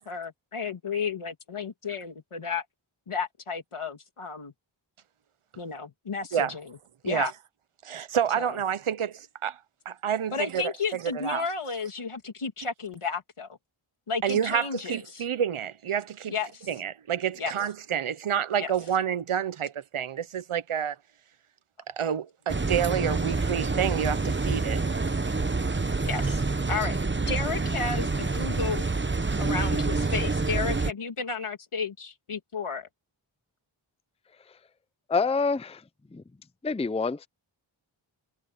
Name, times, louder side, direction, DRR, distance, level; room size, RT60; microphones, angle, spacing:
voice 1, 0.0-2.6 3.1-4.5 5.6-6.7 7.0-7.3 8.3-8.6 10.3-13.5 14.1-15.2 16.3-16.7 17.4-17.5 18.6-18.7 26.0-27.0 27.3-28.8 29.4-32.9, left 5 dB, 90° left, 2.7 m, -32 dB
voice 2, 7.8-9.6 9.9-11.4 14.2-16.3 16.7-21.0 21.9-24.8, right 8 dB, 80° right, 0.8 m, -29 dB
sound 1, 22.5-30.9, right 3 dB, 25° right, 0.9 m, -27 dB
voice 3, 35.1-35.8 36.1-36.2 36.6-37.3, left 4 dB, 15° left, 0.5 m, -26 dB
wide cardioid pair, 60°, 50 cm